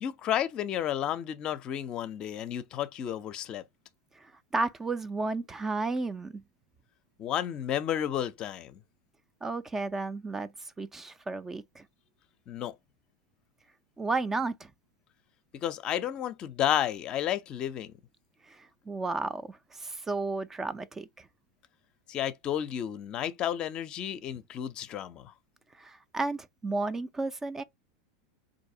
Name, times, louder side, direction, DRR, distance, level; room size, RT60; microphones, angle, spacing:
voice 1, 0.0-3.6 7.2-8.8 12.5-12.7 15.5-17.9 22.1-25.3, left 10 dB, 40° left, 0.5 m, -32 dB
voice 2, 4.2-6.4 9.4-11.8 14.0-14.7 18.5-21.3 25.7-27.6, right 3 dB, 15° right, 0.3 m, -33 dB
3.9 x 2.6 x 2.6 m
hypercardioid pair, 105°, 2 cm